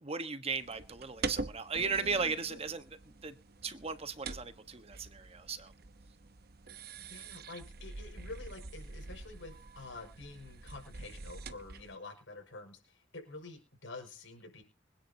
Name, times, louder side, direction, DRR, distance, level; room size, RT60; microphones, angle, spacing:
voice 1, 0.0-2.8 3.2-3.3 3.6-5.7, right 5 dB, 30° right, 1.3 m, -36 dB
sound 1, 0.5-12.0, right 3 dB, 55° right, 1.0 m, -45 dB
voice 2, 7.0-14.6, left 3 dB, 80° left, 5.7 m, -48 dB
25.5 x 10.0 x 2.8 m
head